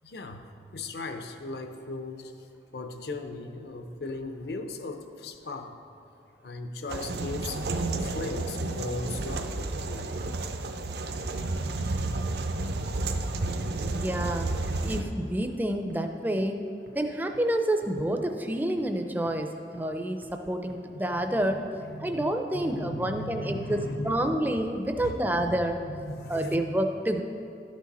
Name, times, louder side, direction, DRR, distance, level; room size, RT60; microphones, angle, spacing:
voice 1, 0.0-0.4 0.7-2.5 2.7-5.8 6.4-7.6 7.9-10.2 12.2-12.3 20.6-21.5 21.8-24.4 25.0-25.4 25.8-26.8, left 2 dB, 65° left, 7 dB, 0.7 m, -37 dB
sound 1, 6.9-15.0, right 2 dB, 65° right, 0.5 m, -31 dB
sound 2, 10.6-10.7 11.1-11.2 11.6-11.7 12.1-12.2 12.5-12.6 13.0-13.1 13.5-13.6 14.0-14.1 14.5-14.6 14.9-15.0 15.4-15.5 15.9-16.0 16.4-16.5 16.9-17.0 17.3-17.4 17.8-17.9 18.3-18.4 18.8-18.9 19.3-19.4 19.7-19.8 20.2-20.3 20.7-20.8 21.2-21.3 21.7-21.8 22.1-22.2 22.6-22.7 23.1-23.2 23.6-23.7 24.1-24.2 24.5-24.6 25.0-25.1, right 1 dB, 80° right, 1.3 m, -51 dB
voice 2, 13.9-14.5 14.8-16.7 16.9-21.6 22.0-25.8 26.3-27.2, right 1 dB, 10° right, 5 dB, 0.4 m, -28 dB
12.0 x 6.2 x 4.2 m, 2.6 s
head